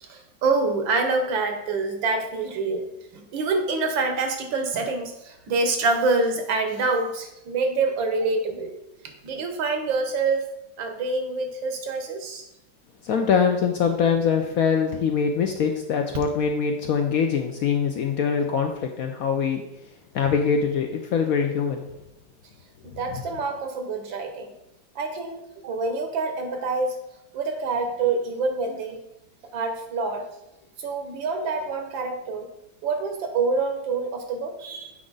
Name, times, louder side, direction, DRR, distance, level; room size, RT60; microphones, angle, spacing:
voice 1, 0.0-2.9 3.1-8.7 9.2-10.4 10.8-12.5 22.8-24.5 25.0-27.0 27.3-29.0 29.5-30.2 30.8-32.5 32.8-35.0, right 3 dB, 85° right, 5 dB, 1.8 m, -26 dB
voice 2, 13.0-19.6 20.1-21.8, left 6 dB, 70° left, 4 dB, 0.8 m, -23 dB
7.6 x 4.8 x 3.9 m, 0.88 s
omnidirectional pair, 2.0 m